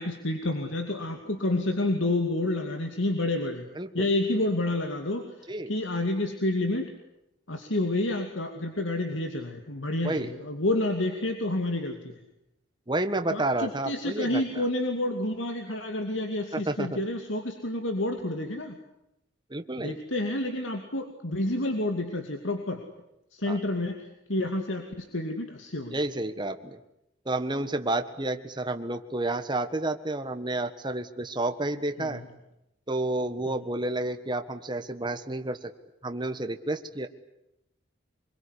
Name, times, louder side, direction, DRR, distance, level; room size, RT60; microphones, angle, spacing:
voice 1, 0.0-3.7 3.9-6.9 7.5-12.1 13.3-18.8 19.8-22.8 23.3-24.0 24.3-26.0 32.0-32.2 33.5-33.6, left 1 dB, 75° left, 4 dB, 2.6 m, -29 dB
voice 2, 3.7-4.1 5.5-5.7 10.0-10.3 12.9-14.6 16.5-17.0 19.5-20.0 23.5-23.6 25.9-26.8 27.2-32.2 32.9-35.7 36.0-37.1, right 2 dB, 25° right, 7 dB, 1.5 m, -30 dB
25.5 x 22.5 x 9.9 m, 0.84 s
head